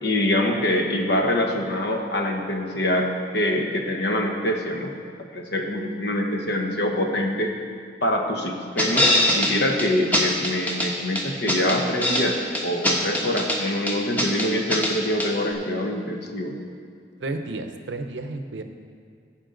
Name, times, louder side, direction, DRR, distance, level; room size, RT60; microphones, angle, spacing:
voice 1, 0.0-4.9 5.3-7.5 8.0-9.1 9.3-16.5, left 1 dB, 65° left, 2 dB, 1.1 m, -25 dB
sound 1, 8.8-9.5 9.8-9.9 10.1-10.9 11.2-12.2 12.5-13.6 13.9-14.9 15.2-15.3, left 1 dB, 10° left, 1.0 m, -22 dB
voice 2, 17.2-18.6, right 2 dB, 75° right, 7 dB, 0.7 m, -32 dB
15.5 x 5.5 x 3.8 m, 2.3 s
head